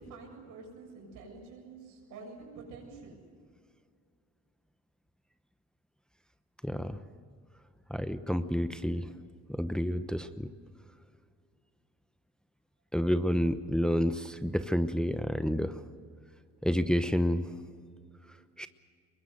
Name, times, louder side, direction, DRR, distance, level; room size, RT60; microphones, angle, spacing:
voice 1, 0.0-3.2, right 4 dB, 85° right, 1 dB, 7.2 m, -48 dB
voice 2, 6.6-7.0 7.9-9.1 9.5-10.5 12.9-15.8 16.6-17.5 18.6-18.7, equal, 5° left, 10 dB, 0.9 m, -29 dB
24.0 x 21.5 x 8.0 m, 2.2 s
cardioid pair, 90°, 30 cm